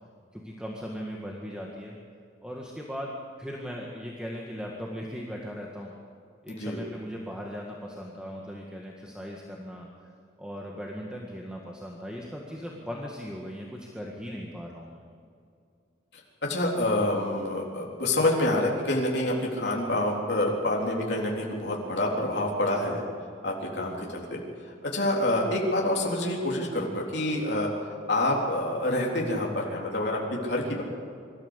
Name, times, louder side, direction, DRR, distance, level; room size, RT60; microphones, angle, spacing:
voice 1, 0.3-1.9 2.4-3.1 3.4-5.9 6.4-10.1 10.4-15.0 23.8-24.1, equal, 5° right, -2 dB, 1.8 m, -38 dB
voice 2, 6.5-6.8 16.4-23.0 23.4-24.4 24.8-27.7 28.1-30.8, left 1 dB, 60° left, -2 dB, 3.8 m, -27 dB
25.0 x 13.5 x 8.2 m, 2.4 s
head